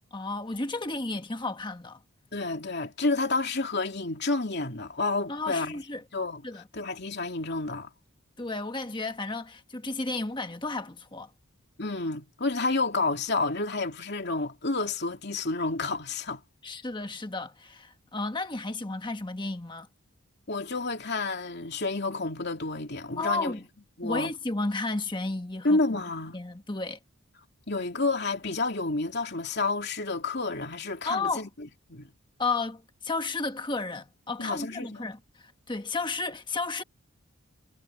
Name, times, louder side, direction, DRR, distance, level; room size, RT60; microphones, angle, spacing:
voice 1, 0.1-2.0 5.3-6.0 6.4-6.6 8.4-11.3 16.6-19.9 23.2-23.6 24.0-26.0 26.3-27.0 31.0-31.5 32.4-36.8, left 3 dB, 20° left, 1.4 m, -33 dB
voice 2, 2.3-5.8 6.1-6.4 6.7-7.9 11.8-16.4 20.5-23.6 24.0-24.3 25.6-26.4 27.7-31.5 31.9-32.1 34.4-35.0, left 3 dB, 50° left, 2.9 m, -30 dB
head